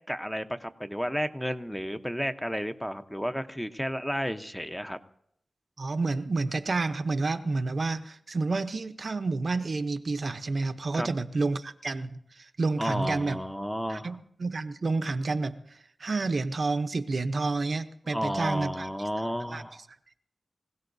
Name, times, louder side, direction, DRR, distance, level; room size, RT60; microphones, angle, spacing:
voice 1, 0.1-5.0 10.9-11.1 12.8-14.2 18.1-19.8, equal, 5° left, 0.8 m, -32 dB
voice 2, 5.8-13.4 13.9-15.6 16.0-18.9 19.5-19.6, right 3 dB, 60° right, 0.7 m, -29 dB
25.5 x 16.5 x 2.7 m
wide cardioid pair, 70°, 0 cm